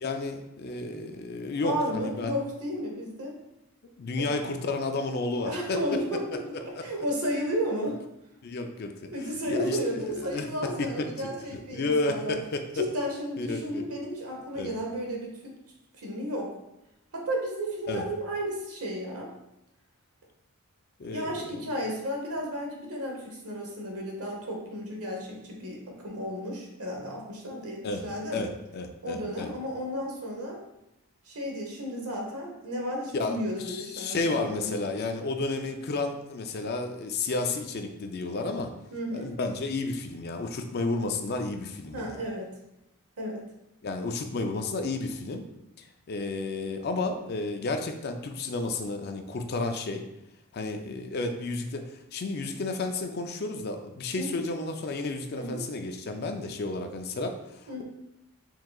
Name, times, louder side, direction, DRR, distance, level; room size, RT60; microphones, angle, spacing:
voice 1, 0.0-2.4 4.0-5.8 6.3-6.8 8.4-9.1 9.5-11.1 11.5-12.8 13.4-13.9 14.6-14.7 17.9-18.0 21.0-21.6 27.8-28.0 28.3-29.5 33.1-38.7 39.1-42.2 43.8-45.5 45.8-50.0 50.5-57.8, left 3 dB, 45° left, 5 dB, 0.4 m, -32 dB
voice 2, 1.6-3.4 4.2-4.3 5.5-8.0 9.1-12.4 12.7-15.6 16.0-16.6 17.1-19.3 21.0-28.5 29.0-30.6 31.3-34.7 38.9-39.3 41.9-42.6 43.2-43.4 54.1-54.5 55.4-55.7 57.7-57.8, equal, 80° right, 0 dB, 1.0 m, -33 dB
4.5 x 3.7 x 2.3 m, 0.89 s
head